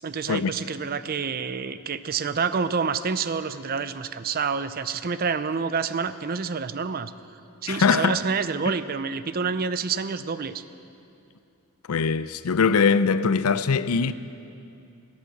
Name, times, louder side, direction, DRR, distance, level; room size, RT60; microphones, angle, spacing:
voice 1, 0.0-7.1 7.6-10.6, right 5 dB, 45° right, 0.5 m, -28 dB
voice 2, 7.7-8.2 11.9-14.1, left 5 dB, 85° left, 0.5 m, -21 dB
20.0 x 8.7 x 7.8 m
head